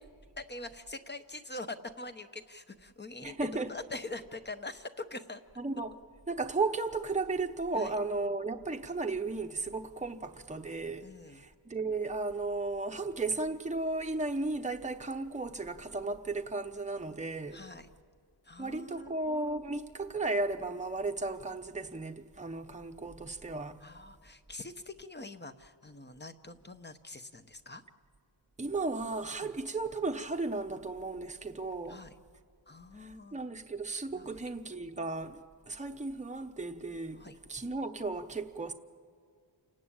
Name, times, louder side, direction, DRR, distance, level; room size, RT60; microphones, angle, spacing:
voice 1, 0.4-5.4 7.7-8.0 11.0-11.5 17.5-17.9 18.4-19.2 23.8-27.8 29.4-29.5 31.9-32.1 32.7-33.4 34.1-34.4 37.1-37.4, left 2 dB, 25° left, 0.9 m, -44 dB
voice 2, 3.2-3.7 5.6-6.0 6.3-17.6 18.6-23.8 28.6-32.0 33.0-35.4 35.7-37.2 37.5-38.7, right 3 dB, 15° right, 0.9 m, -35 dB
28.5 x 18.0 x 8.8 m
wide cardioid pair, 135°, 46 cm